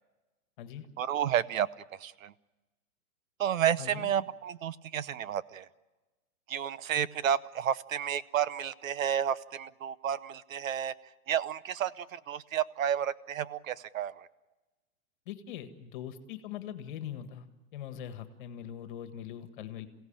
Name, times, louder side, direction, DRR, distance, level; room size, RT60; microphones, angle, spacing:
voice 1, 1.0-2.3 3.4-5.7 6.5-10.9 11.3-14.3, right 9 dB, 65° right, 18 dB, 0.9 m, -31 dB
voice 2, 3.8-4.1 15.2-17.5 17.7-19.9, left 10 dB, 35° left, 9 dB, 1.7 m, -41 dB
28.0 x 17.0 x 8.8 m, 1.1 s
hypercardioid pair, 170°, 44 cm